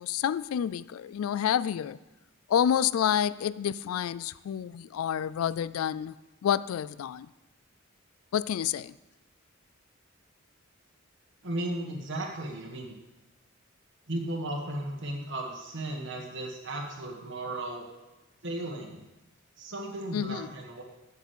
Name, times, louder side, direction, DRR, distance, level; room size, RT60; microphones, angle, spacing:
voice 1, 0.0-2.0 2.5-6.1 6.4-7.3 8.3-8.9 20.1-20.5, left 9 dB, 85° left, 18 dB, 0.3 m, -28 dB
voice 2, 11.4-12.9 14.1-17.9 18.4-19.0 19.6-20.8, right 1 dB, 60° right, 0 dB, 1.5 m, -35 dB
7.9 x 7.4 x 8.1 m, 1.0 s
head